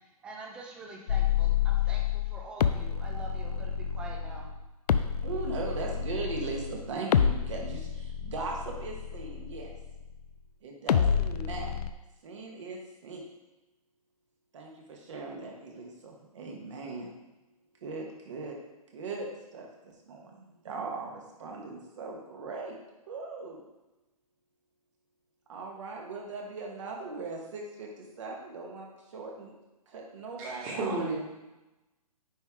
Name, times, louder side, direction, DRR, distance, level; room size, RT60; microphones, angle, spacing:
voice 1, 0.2-4.5, right 2 dB, 5° right, 1 dB, 0.4 m, -45 dB
sound 1, 1.1-10.3 10.9-11.9, left 8 dB, 85° left, 0.4 m, -29 dB
voice 2, 5.2-9.7 10.6-11.7 12.2-13.2 14.5-17.1 17.8-18.6 18.9-22.8 23.1-23.6 25.5-29.5 29.9-31.0, right 3 dB, 50° right, 0 dB, 1.4 m, -39 dB
voice 3, 30.4-31.1, right 3 dB, 25° right, -2 dB, 1.6 m, -32 dB
9.2 x 3.6 x 3.6 m, 1.0 s
hypercardioid pair, 160°, 20 cm